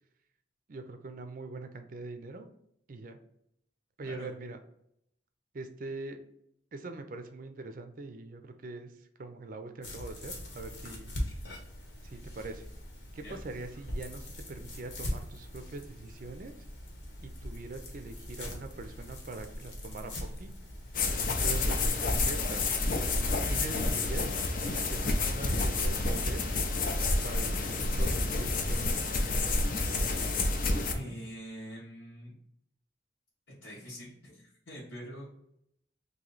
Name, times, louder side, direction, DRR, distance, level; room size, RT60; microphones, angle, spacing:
voice 1, 0.7-2.5 2.9-3.2 4.0-4.6 5.5-6.2 6.7-8.9 9.2-11.1 12.0-12.7 13.1-16.5 17.4-20.5 21.3-22.6 23.5-24.4 24.6-26.4 27.2-29.0 31.0-31.2, right 3 dB, 45° right, 7 dB, 0.4 m, -42 dB
sound 1, 9.8-21.1, left 1 dB, 65° left, 1.1 m, -41 dB
sound 2, 20.9-30.9, left 2 dB, 45° left, 0.5 m, -29 dB
voice 2, 30.9-32.3 33.5-35.3, equal, 90° left, -8 dB, 1.2 m, -44 dB
3.0 x 2.7 x 3.9 m, 0.76 s
head